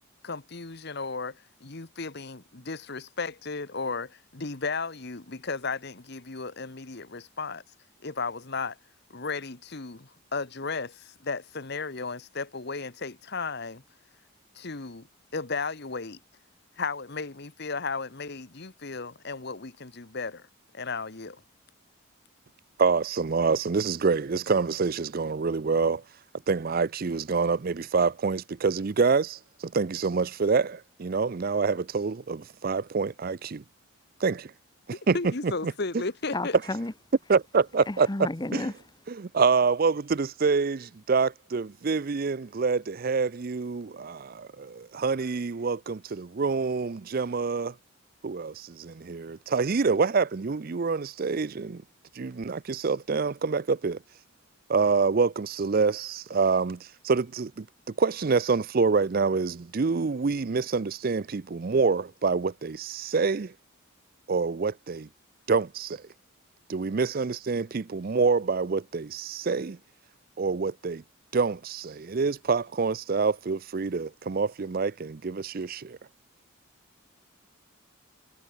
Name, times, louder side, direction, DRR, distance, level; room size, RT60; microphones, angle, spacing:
voice 1, 0.2-1.4 1.6-7.6 8.0-8.8 9.1-13.8 14.5-15.1 15.3-16.2 16.8-20.5 20.7-21.4 35.1-36.6, left 4 dB, 50° left, 1.2 m, -34 dB
voice 2, 22.8-26.0 26.5-33.6 34.2-34.5 35.1-35.7 37.3-38.7 39.1-47.7 48.2-51.8 52.1-54.0 54.7-57.7 58.0-63.5 64.3-65.1 65.5-66.0 66.7-69.8 70.4-71.0 71.3-76.0, right 4 dB, 45° right, 0.5 m, -26 dB
voice 3, 36.3-36.9 38.1-38.7, left 2 dB, 20° left, 0.7 m, -31 dB
head